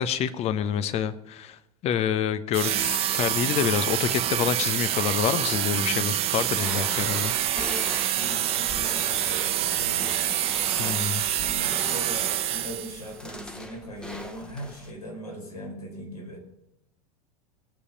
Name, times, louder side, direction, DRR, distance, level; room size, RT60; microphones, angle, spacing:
voice 1, 0.0-7.3 10.8-11.3, left 9 dB, 35° left, 13 dB, 0.9 m, -27 dB
sound 1, 2.5-13.1, right 12 dB, 30° right, 0.7 m, -26 dB
sound 2, 6.4-14.9, left 1 dB, 5° left, 1.3 m, -40 dB
voice 2, 7.8-10.3 11.3-16.4, equal, 80° left, -1 dB, 4.4 m, -40 dB
19.5 x 8.3 x 5.2 m, 0.86 s
figure-of-eight pair, 80°, 19 cm